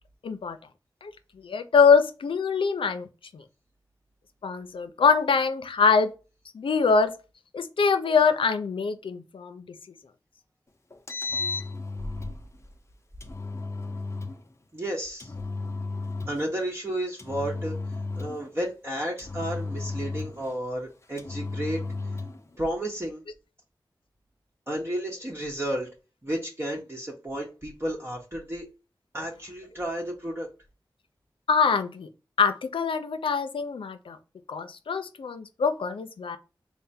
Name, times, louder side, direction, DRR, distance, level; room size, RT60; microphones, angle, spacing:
voice 1, 0.2-0.6 1.0-1.1 1.4-3.4 4.4-6.1 6.5-7.1 7.5-9.8 31.5-32.1 32.4-34.2 34.5-36.4, left 5 dB, 90° left, 9 dB, 0.5 m, -24 dB
Engine, 10.9-12.4 13.2-14.4 15.2-16.5 17.2-18.5 19.2-20.5 21.2-22.4, left 3 dB, 30° left, 0.6 m, -34 dB
voice 2, 14.7-15.3 16.3-17.8 18.2-21.8 22.6-23.2 24.7-25.9 26.2-28.7 29.1-30.5, right 1 dB, 30° right, -2 dB, 0.9 m, -32 dB
3.3 x 2.1 x 4.1 m, 0.31 s
cardioid pair, 45°, 9 cm